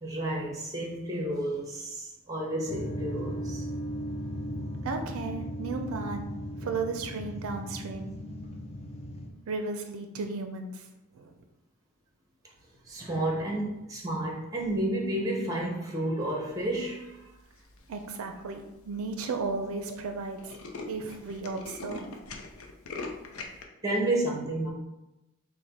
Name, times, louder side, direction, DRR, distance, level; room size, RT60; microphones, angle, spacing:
voice 1, 0.0-3.6 12.8-17.3 23.8-24.7, right 1 dB, 15° right, -1 dB, 0.8 m, -31 dB
sound 1, 2.7-9.3, equal, 30° left, 0.4 m, -37 dB
voice 2, 4.8-6.3 6.6-8.1 9.5-10.9 11.1-11.3 17.9-20.5 20.8-22.0, right 4 dB, 75° right, 5 dB, 0.4 m, -34 dB
Tools, 17.6-18.0 18.6-18.7 18.9-19.0 19.3-19.5 19.8-19.9 20.2-23.6, left 3 dB, 75° left, 0.6 m, -41 dB
4.0 x 2.1 x 4.4 m, 0.96 s
head